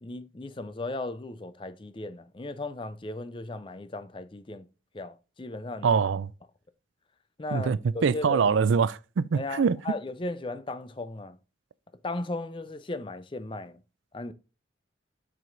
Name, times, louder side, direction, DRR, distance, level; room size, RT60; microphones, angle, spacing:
voice 1, 0.0-4.7 4.9-6.0 7.4-8.5 9.3-11.4 12.0-13.8 14.1-14.3, left 2 dB, 25° left, 0.5 m, -36 dB
voice 2, 5.8-6.3 7.5-9.8, right 6 dB, 85° right, 0.4 m, -24 dB
7.6 x 4.8 x 2.6 m
head